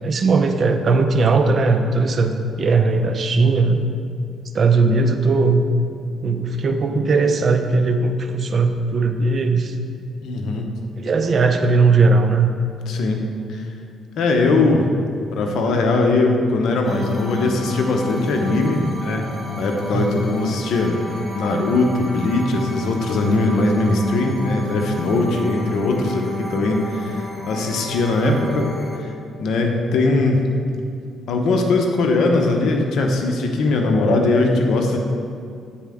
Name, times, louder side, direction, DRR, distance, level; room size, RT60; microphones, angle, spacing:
voice 1, 0.0-3.9 4.5-5.6 6.2-9.8 11.0-12.5 19.9-20.0 28.2-28.5, right 3 dB, 50° right, 6 dB, 0.5 m, -18 dB
voice 2, 10.2-10.7 12.9-13.2 13.5-13.7 14.2-14.9 15.3-19.3 19.6-21.0 21.4-28.7 29.0-29.1 29.4-30.4 31.3-35.0, left 2 dB, 75° left, 3 dB, 0.8 m, -20 dB
sound 1, 16.8-29.0, left 2 dB, 15° left, 1.3 m, -33 dB
8.8 x 4.2 x 3.6 m, 2.3 s
cardioid pair, 90°, 0 cm